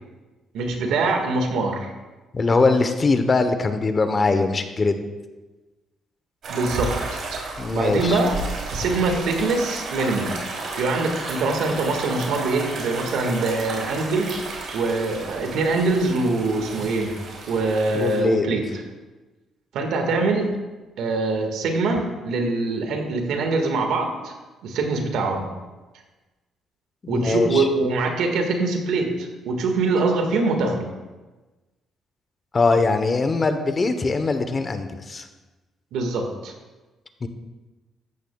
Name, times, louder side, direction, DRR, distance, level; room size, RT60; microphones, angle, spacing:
voice 1, 0.5-1.9 6.5-8.4 8.7-10.3 10.8-14.5 14.7-17.1 17.5-18.8 19.7-20.5 21.0-24.3 24.6-25.5 27.1-30.9 35.9-36.5, right 3 dB, 85° right, 3 dB, 1.7 m, -23 dB
voice 2, 2.3-5.0 7.6-8.2 17.9-18.5 27.0-27.7 32.5-35.3 37.2-37.3, left 3 dB, 35° left, 8 dB, 0.9 m, -21 dB
sound 1, 6.4-18.2, right 3 dB, 65° right, 3.3 m, -32 dB
14.0 x 10.0 x 2.3 m, 1.2 s
cardioid pair, 90°, 0 cm